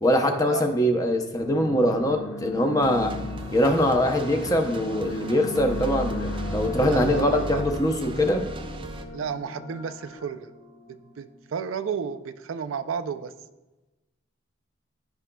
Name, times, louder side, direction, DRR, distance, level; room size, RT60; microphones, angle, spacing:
voice 1, 0.0-3.1 3.5-8.4, equal, 15° left, 4 dB, 0.6 m, -23 dB
sound 1, 1.4-11.1, left 3 dB, 60° left, 0.8 m, -37 dB
sound 2, 2.8-9.0, right 1 dB, 25° right, 0.4 m, -35 dB
voice 2, 6.8-7.6 9.1-10.5 10.9-13.3, right 6 dB, 85° right, 11 dB, 0.4 m, -32 dB
15.0 x 4.9 x 2.3 m, 1.1 s
head